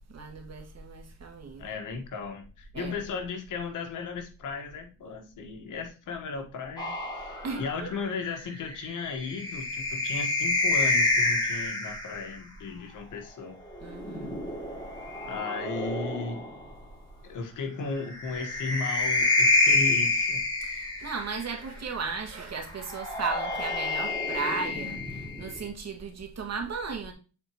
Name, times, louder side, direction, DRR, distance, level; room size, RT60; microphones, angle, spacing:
voice 1, 0.1-1.6 2.7-3.0 7.4-7.9 13.8-14.4 20.6-27.1, right 4 dB, 60° right, 1.9 m, -35 dB
voice 2, 1.6-13.6 15.3-16.5 17.2-20.5, left 4 dB, 90° left, 1.5 m, -36 dB
sound 1, 6.8-12.3 13.7-16.7 18.0-21.5 22.7-25.7, left 3 dB, 15° left, 2.8 m, -28 dB
8.0 x 4.4 x 3.0 m
cardioid pair, 90°, 30 cm